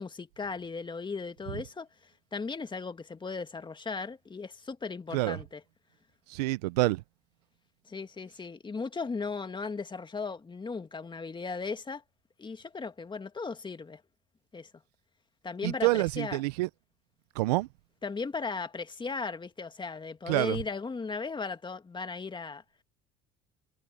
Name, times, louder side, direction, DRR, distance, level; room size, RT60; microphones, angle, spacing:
voice 1, 0.0-1.9 2.3-5.6 7.9-12.0 12.4-14.0 14.5-14.7 15.4-16.4 18.0-22.6, left 4 dB, 25° left, 2.1 m, -37 dB
voice 2, 5.1-5.4 6.3-7.0 15.6-16.7 17.3-17.7 20.3-20.6, right 21 dB, 85° right, 0.7 m, -27 dB
hypercardioid pair, 75°, 20 cm